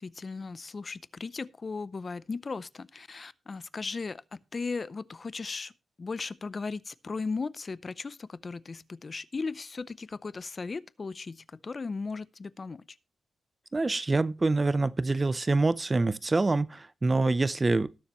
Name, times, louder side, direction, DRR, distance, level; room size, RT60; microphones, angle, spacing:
voice 1, 0.0-5.7 6.0-12.8, left 4 dB, 35° left, 0.5 m, -37 dB
voice 2, 13.7-17.9, right 3 dB, 25° right, 0.5 m, -26 dB
19.5 x 7.1 x 3.0 m
wide cardioid pair, 130°, 0 cm